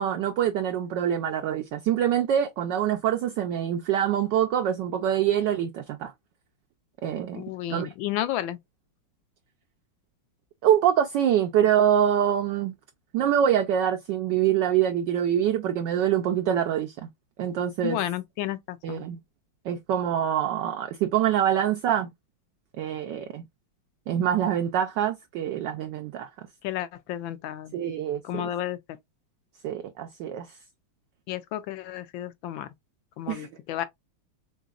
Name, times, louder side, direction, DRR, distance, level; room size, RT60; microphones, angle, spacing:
voice 1, 0.0-6.1 7.0-7.4 7.7-7.9 10.6-12.7 13.1-17.1 17.4-18.0 18.8-19.2 19.6-22.1 22.8-23.4 24.1-26.3 27.7-28.5 29.6-30.5 33.3-33.5, right 10 dB, 75° right, 1.0 m, -25 dB
voice 2, 7.3-8.6 17.8-19.1 26.6-27.8 28.2-28.8 31.3-32.7 33.2-33.8, left 12 dB, 75° left, 1.2 m, -32 dB
4.0 x 3.7 x 2.3 m
omnidirectional pair, 2.4 m